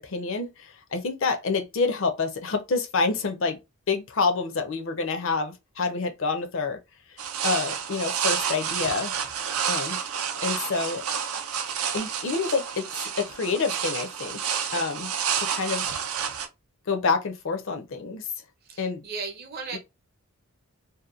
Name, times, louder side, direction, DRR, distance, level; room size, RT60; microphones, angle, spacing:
voice 1, 0.0-3.6 3.9-6.8 7.4-9.1 9.7-10.0 10.4-11.0 11.9-12.9 13.2-14.4 14.7-15.1 15.4-15.9 16.9-18.3 18.8-19.0 19.7-19.8, left 4 dB, 60° left, 0.5 m, -27 dB
sound 1, 7.2-16.5, right 7 dB, 80° right, 0.5 m, -30 dB
voice 2, 18.6-19.8, right 4 dB, 45° right, 0.7 m, -36 dB
2.8 x 2.1 x 2.4 m
head